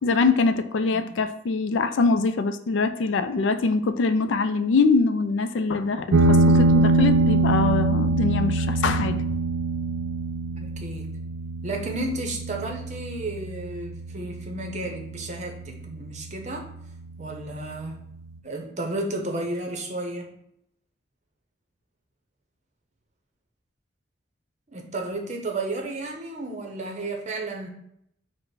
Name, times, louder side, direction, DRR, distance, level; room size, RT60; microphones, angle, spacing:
voice 1, 0.0-9.2, left 4 dB, 70° left, 10 dB, 0.3 m, -23 dB
sound 1, 6.1-15.1, right 2 dB, 75° right, 0.5 m, -23 dB
voice 2, 10.6-11.1 11.6-16.7 17.2-18.0 18.4-20.3 24.7-27.7, right 2 dB, 35° right, 3 dB, 0.7 m, -32 dB
4.9 x 2.1 x 4.6 m, 0.75 s
head